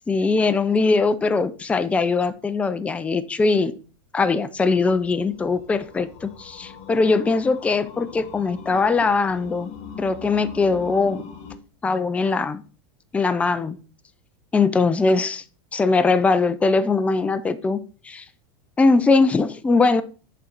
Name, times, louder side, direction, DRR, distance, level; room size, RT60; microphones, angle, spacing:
voice 1, 0.1-3.7 4.1-9.7 10.0-11.2 11.8-12.6 13.1-13.8 14.5-15.4 15.7-17.8 18.0-18.2 18.8-20.0, left 4 dB, 10° left, 0.4 m, -21 dB
sound 1, 4.7-11.6, left 6 dB, 45° left, 1.2 m, -41 dB
6.7 x 3.8 x 5.8 m
supercardioid pair, 140°, 16 cm